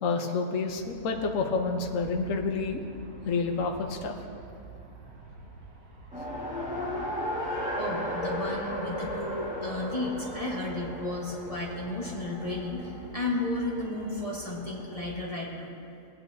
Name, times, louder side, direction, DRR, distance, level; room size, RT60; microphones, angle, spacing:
voice 1, 0.0-2.8 3.3-4.2, left 4 dB, 60° left, 4 dB, 1.1 m, -29 dB
Aircraft, 0.6-12.8, right 3 dB, 50° right, 1.2 m, -49 dB
Race car auto racing, 6.1-15.2, equal, 5° right, 1.5 m, -36 dB
voice 2, 7.4-15.7, left 2 dB, 25° left, -4 dB, 1.3 m, -33 dB
18.5 x 8.8 x 2.7 m, 2.7 s
omnidirectional pair, 1.7 m